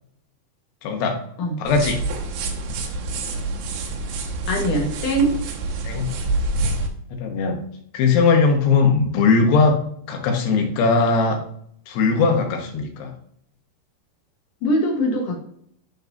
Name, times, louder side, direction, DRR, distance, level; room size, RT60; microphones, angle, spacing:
voice 1, 0.8-1.2 1.6-2.0 5.8-6.1 7.2-7.6 7.9-9.8 10.1-11.4 11.9-13.1, left 4 dB, 90° left, 3 dB, 3.3 m, -19 dB
sound 1, 1.7-6.9, right 2 dB, 75° right, 2.7 m, -27 dB
voice 2, 4.5-5.3 14.6-15.4, right 1 dB, 60° left, 1 dB, 2.5 m, -21 dB
11.5 x 3.9 x 2.7 m, 0.67 s
omnidirectional pair, 4.6 m